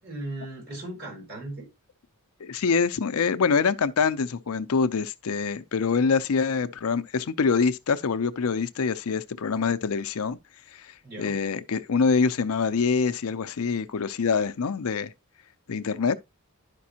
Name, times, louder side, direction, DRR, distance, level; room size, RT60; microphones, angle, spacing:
voice 1, 0.0-1.7 11.0-11.4, right 2 dB, 50° right, 5.6 m, -37 dB
voice 2, 2.4-10.4 11.2-15.1 15.7-16.2, left 5 dB, 70° left, 0.5 m, -25 dB
11.5 x 5.2 x 2.8 m
head